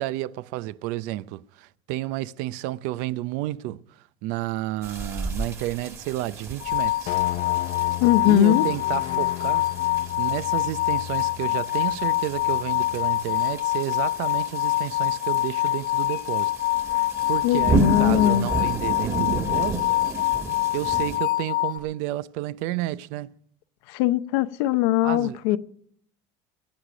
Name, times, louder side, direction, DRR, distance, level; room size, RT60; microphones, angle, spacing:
voice 1, 0.0-7.2 8.2-9.7 10.2-16.5 16.9-19.9 20.7-23.3 25.0-25.6, right 16 dB, 70° right, 0.6 m, -31 dB
sound 1, 4.8-21.2, right 3 dB, 20° right, 1.9 m, -33 dB
sound 2, 6.6-21.8, left 17 dB, 70° left, 1.1 m, -25 dB
sound 3, 7.1-13.5, left 13 dB, 55° left, 0.5 m, -37 dB
voice 2, 8.0-8.6 17.4-18.5 23.9-25.6, left 14 dB, 85° left, 0.7 m, -20 dB
22.0 x 8.3 x 5.0 m
cardioid pair, 135°, 13 cm